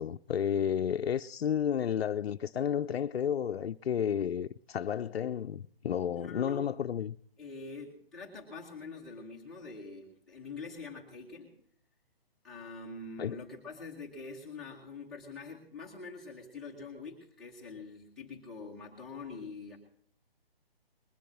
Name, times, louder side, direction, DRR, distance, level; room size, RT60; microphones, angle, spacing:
voice 1, 0.0-7.2 13.2-13.4, left 8 dB, 85° left, 0.5 m, -32 dB
voice 2, 6.2-6.6 7.4-11.5 12.4-19.8, left 3 dB, ahead, 0.9 m, -45 dB
20.5 x 7.0 x 7.5 m
hypercardioid pair, 170°, 30 cm